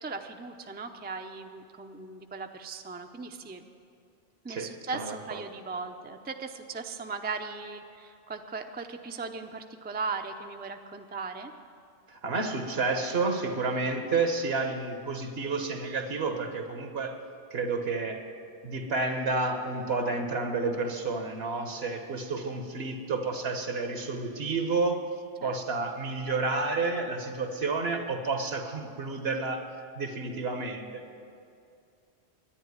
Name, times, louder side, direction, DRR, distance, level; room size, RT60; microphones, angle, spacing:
voice 1, 0.0-3.6 4.4-11.5 25.4-25.6, right 4 dB, 15° right, 5 dB, 0.4 m, -38 dB
voice 2, 4.5-5.4 12.2-17.1 17.5-18.2 18.6-25.0 25.4-29.6 30.0-31.0, right 3 dB, 70° right, 5 dB, 1.4 m, -30 dB
11.0 x 10.0 x 9.5 m, 2.5 s
omnidirectional pair, 1.1 m